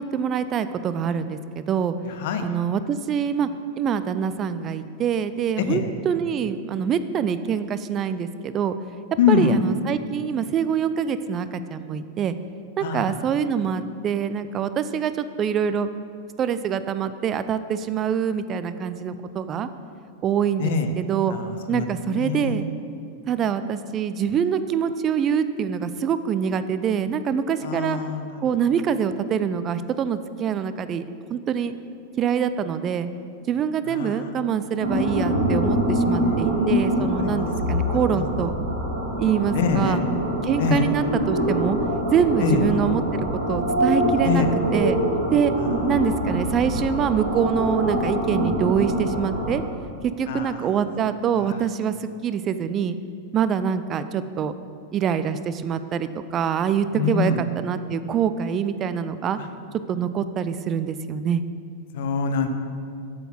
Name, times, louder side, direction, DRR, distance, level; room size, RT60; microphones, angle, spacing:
voice 1, 0.0-1.9 2.4-3.5 3.8-8.8 9.3-12.3 12.8-15.9 16.4-19.7 20.2-21.4 21.7-22.7 23.3-28.0 28.4-31.0 31.3-31.7 32.2-33.1 33.5-38.5 39.2-40.0 40.4-41.8 42.1-44.4 44.7-45.0 45.3-45.5 45.9-49.6 50.0-53.0 53.3-54.5 54.9-57.3 57.6-59.4 59.9-61.4, right 7 dB, 30° right, 12 dB, 0.3 m, -25 dB
voice 2, 2.0-2.4 5.6-5.9 9.2-9.6 12.8-13.2 20.6-20.9 21.3-22.7 27.6-28.5 33.9-34.5 36.2-37.5 38.1-38.2 39.5-40.0 40.6-40.9 42.4-42.6 44.2-44.6 45.6-45.7 50.3-50.8 51.4-51.6 56.9-57.5 59.4-59.5 61.9-62.5, left 5 dB, 55° left, 7 dB, 0.6 m, -25 dB
sound 1, 34.8-49.6, equal, 85° right, 2.1 m, -24 dB
7.9 x 6.3 x 4.6 m, 2.4 s
figure-of-eight pair, 90°, 0 cm